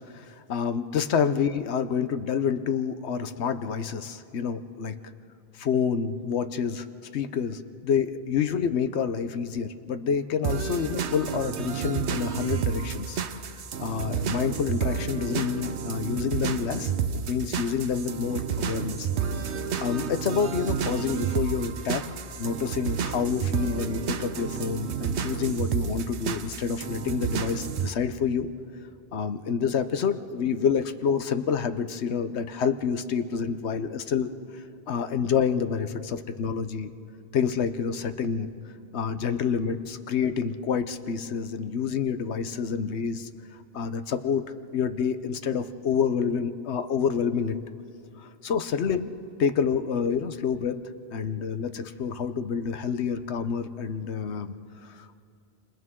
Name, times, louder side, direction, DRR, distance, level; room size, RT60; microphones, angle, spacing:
voice 1, 0.1-5.0 5.6-6.9 7.1-13.2 13.8-19.1 19.5-22.0 22.4-28.5 29.1-36.9 37.3-38.5 38.9-43.3 43.7-44.4 44.7-47.6 48.2-49.1 49.4-50.8 51.1-54.5 54.8-55.2, left 6 dB, 80° left, 10 dB, 1.1 m, -28 dB
sound 1, 10.4-27.9, right 7 dB, 80° right, 1.1 m, -30 dB
28.0 x 26.5 x 3.7 m, 2.5 s
omnidirectional pair, 1.1 m